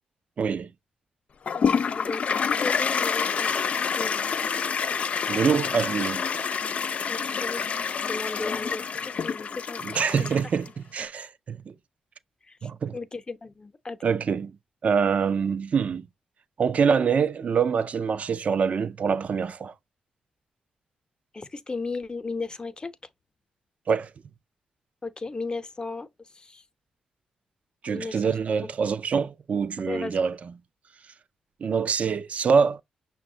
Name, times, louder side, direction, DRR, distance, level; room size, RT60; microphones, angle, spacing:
voice 1, 0.4-0.7 5.3-6.2 9.8-11.7 12.6-13.0 14.0-14.5 14.8-16.1 16.6-19.7 23.9-24.1 27.8-30.5 31.6-32.8, right 6 dB, 55° right, 0.5 m, -25 dB
Toilet flush, 1.5-10.7, left 6 dB, 55° left, 0.3 m, -27 dB
voice 2, 1.5-4.3 7.1-7.8 8.1-10.0 12.5-14.0 21.3-22.9 25.0-26.6 27.9-28.3 28.6-28.7 29.9-30.2, left 3 dB, 35° left, 0.8 m, -36 dB
6.0 x 2.3 x 3.8 m
supercardioid pair, 50°, 3 cm